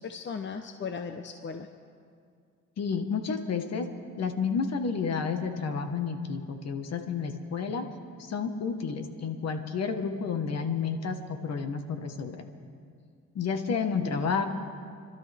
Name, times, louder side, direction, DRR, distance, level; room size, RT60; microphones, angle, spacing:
voice 1, 0.0-1.7 13.7-14.3, left 5 dB, 40° left, 7 dB, 0.9 m, -37 dB
voice 2, 2.8-3.9 4.2-7.8 8.2-12.5 13.3-14.5, left 5 dB, 60° left, 6 dB, 1.5 m, -31 dB
29.0 x 12.5 x 3.6 m, 2.2 s
cardioid pair, 90°, 30 cm